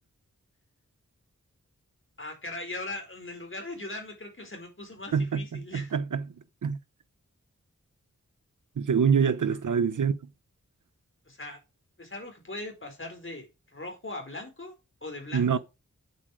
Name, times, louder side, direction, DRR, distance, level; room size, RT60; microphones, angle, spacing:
voice 1, 2.2-5.9 9.2-9.3 9.7-9.8 11.2-11.6 12.0-13.5 13.7-14.7 15.0-15.6, left 2 dB, 40° left, 4.6 m, -39 dB
voice 2, 5.1-6.2 6.6-6.8 8.8-10.2 15.3-15.6, right 6 dB, 85° right, 0.8 m, -25 dB
9.1 x 8.2 x 4.9 m
wide cardioid pair, 65°, 30 cm